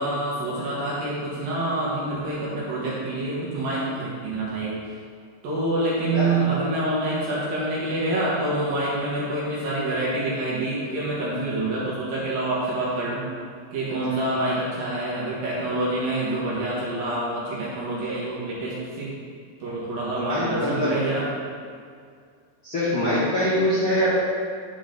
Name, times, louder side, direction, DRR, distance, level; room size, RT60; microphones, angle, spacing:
voice 1, 0.0-4.8 5.4-13.2 13.7-19.1 19.6-21.2, right 2 dB, 60° right, -7 dB, 2.7 m, -26 dB
voice 2, 20.1-20.9 22.6-24.1, equal, 70° left, -10 dB, 1.2 m, -24 dB
11.5 x 6.0 x 3.9 m, 2.2 s
omnidirectional pair, 5.5 m